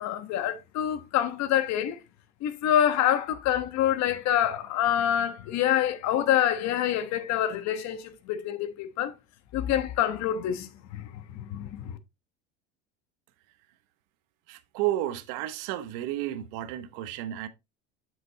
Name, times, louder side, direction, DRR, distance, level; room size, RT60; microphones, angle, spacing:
voice 1, 0.0-2.0 2.4-9.1 9.5-12.0, left 11 dB, 55° left, 1.2 m, -26 dB
voice 2, 14.5-17.5, right 13 dB, 75° right, 1.0 m, -32 dB
7.6 x 6.1 x 2.8 m
supercardioid pair, 110°, 32 cm